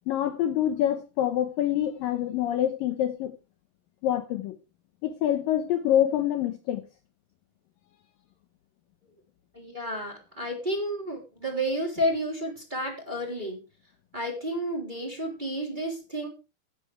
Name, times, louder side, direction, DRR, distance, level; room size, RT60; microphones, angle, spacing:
voice 1, 0.1-3.4 4.0-4.6 5.0-6.9, left 11 dB, 85° left, 2.0 m, -26 dB
voice 2, 9.5-13.6 14.1-16.3, equal, 10° right, 2.8 m, -31 dB
16.5 x 10.0 x 3.4 m
omnidirectional pair, 5.2 m